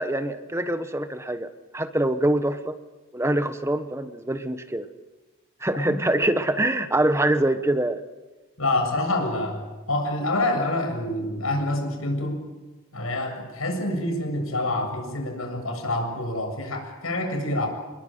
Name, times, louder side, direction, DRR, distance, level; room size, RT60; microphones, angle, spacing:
voice 1, 0.0-2.8 3.1-4.9 5.6-8.0, right 1 dB, 15° right, 10 dB, 1.1 m, -24 dB
voice 2, 8.6-12.4 12.9-17.7, left 1 dB, 90° left, 4 dB, 7.4 m, -27 dB
29.0 x 20.5 x 9.1 m, 1.2 s
head